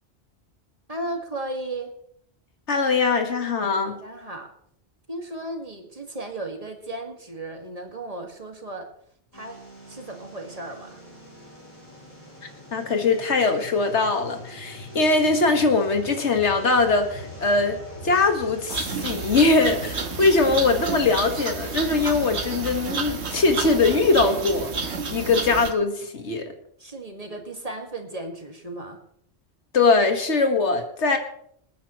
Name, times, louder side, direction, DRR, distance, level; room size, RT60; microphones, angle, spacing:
voice 1, 0.9-1.9 3.9-4.5 5.1-8.9 9.3-9.6 9.9-11.0 26.8-29.0, right 2 dB, 35° right, 3 dB, 2.0 m, -35 dB
voice 2, 2.7-4.0 12.7-17.8 18.0-26.5 29.7-31.2, left 3 dB, 80° left, 5 dB, 1.9 m, -21 dB
sound 1, 9.3-25.7, left 1 dB, 30° left, 5.4 m, -43 dB
sound 2, 18.7-25.7, right 4 dB, 75° right, 1.5 m, -30 dB
27.0 x 9.4 x 3.1 m, 0.68 s
omnidirectional pair, 1.2 m